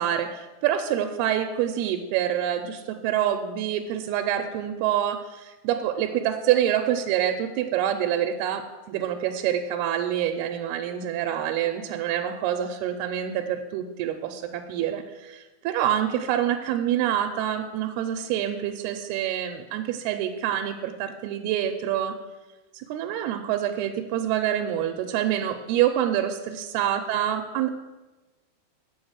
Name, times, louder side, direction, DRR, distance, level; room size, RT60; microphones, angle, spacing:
voice 1, 0.0-22.1 22.7-27.7, right 10 dB, 80° right, 4 dB, 2.5 m, -26 dB
7.5 x 7.2 x 7.9 m, 1.2 s
omnidirectional pair, 4.8 m